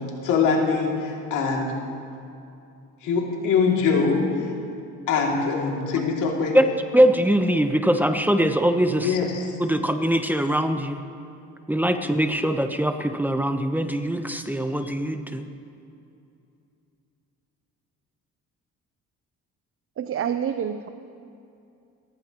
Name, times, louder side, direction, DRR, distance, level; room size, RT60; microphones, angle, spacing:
voice 1, 0.2-1.7 3.0-4.2 5.1-6.6 9.0-9.5, left 5 dB, 90° left, -1 dB, 2.7 m, -23 dB
voice 2, 6.9-9.1 9.6-11.0 11.7-15.5, right 1 dB, 5° right, 7 dB, 0.9 m, -22 dB
voice 3, 20.0-20.9, right 8 dB, 45° right, 9 dB, 0.6 m, -27 dB
28.5 x 15.0 x 3.0 m, 2.6 s
cardioid pair, 90°, 30 cm